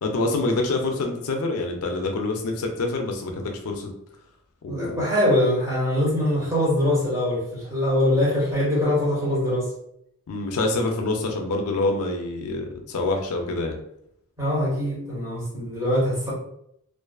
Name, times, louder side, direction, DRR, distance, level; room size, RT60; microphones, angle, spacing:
voice 1, 0.0-3.9 4.6-5.0 10.3-13.8, left 2 dB, 70° left, 3 dB, 0.4 m, -26 dB
voice 2, 4.7-9.7 14.4-16.3, left 1 dB, 15° right, -7 dB, 1.1 m, -23 dB
2.4 x 2.3 x 2.3 m, 0.74 s
head